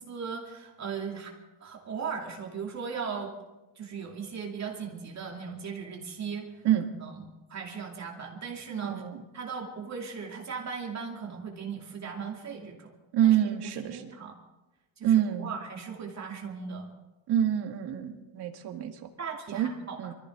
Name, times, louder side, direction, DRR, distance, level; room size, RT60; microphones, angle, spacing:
voice 1, 0.1-1.3 1.6-3.3 3.8-6.6 6.9-7.2 7.5-9.0 9.3-12.9 13.2-14.3 15.0-16.9 19.2-20.0, right 6 dB, 40° right, 0 dB, 2.6 m, -38 dB
voice 2, 8.8-9.2 13.1-14.1 15.0-15.5 17.3-19.1 19.5-19.7 20.0-20.1, right 11 dB, 70° right, 4 dB, 2.0 m, -26 dB
23.5 x 14.5 x 3.8 m, 1.1 s
cardioid pair, 110°, 41 cm